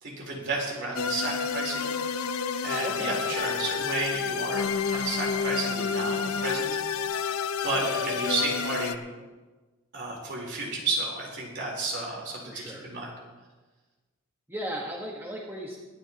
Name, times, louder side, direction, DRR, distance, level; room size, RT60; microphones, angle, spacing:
voice 1, 0.0-1.9 2.6-7.0 7.6-9.0 9.9-13.1, right 2 dB, 55° right, -3 dB, 4.1 m, -32 dB
sound 1, 0.9-9.0, left 6 dB, 90° left, 0.7 m, -29 dB
voice 2, 2.8-3.1 7.6-7.9 12.4-12.8 14.5-15.8, equal, 10° right, -3 dB, 1.6 m, -36 dB
23.5 x 10.5 x 3.0 m, 1.3 s
head